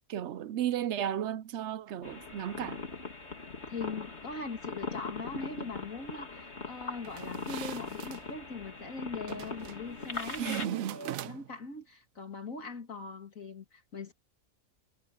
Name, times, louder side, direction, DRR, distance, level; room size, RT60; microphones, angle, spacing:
voice 1, 0.1-2.8 10.4-11.0, right 10 dB, 65° right, 0.8 m, -34 dB
sound 1, 2.0-10.7, left 3 dB, 55° left, 3.0 m, -41 dB
voice 2, 3.7-14.1, left 4 dB, 85° left, 3.0 m, -41 dB
sound 2, 7.0-8.2 9.3-9.8 10.1-11.6, right 14 dB, 90° right, 1.0 m, -42 dB
omnidirectional pair, 1.4 m